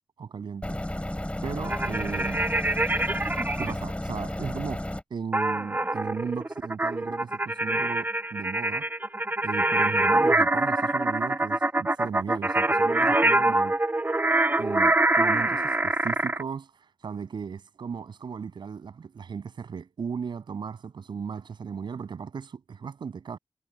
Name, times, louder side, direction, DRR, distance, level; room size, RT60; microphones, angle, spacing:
voice 1, 0.2-0.8 1.4-2.5 3.6-8.9 9.4-13.8 14.6-23.4, right 6 dB, 90° right, 7.3 m, -36 dB
sound 1, 0.6-5.0, left 1 dB, 15° left, 3.6 m, -33 dB
sound 2, 1.6-3.7 5.3-16.4, right 2 dB, 25° right, 0.9 m, -25 dB
cardioid pair, 40°, 8 cm